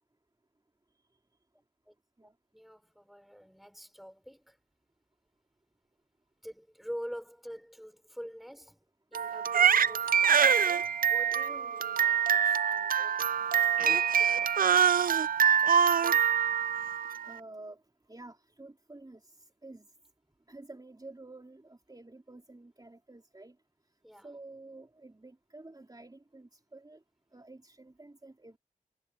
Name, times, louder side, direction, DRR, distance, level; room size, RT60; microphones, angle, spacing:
voice 1, 2.5-4.6 6.4-8.8 9.1-13.2 13.8-14.4 24.0-24.3, equal, ahead, 5.2 m, -46 dB
Crying sobbing, 9.1-17.3, right 8 dB, 80° right, 0.4 m, -25 dB
voice 2, 17.2-17.8 18.1-19.9 20.5-23.6 24.2-27.0 27.3-28.6, right 2 dB, 25° right, 3.7 m, -50 dB
cardioid pair, 50°, 15 cm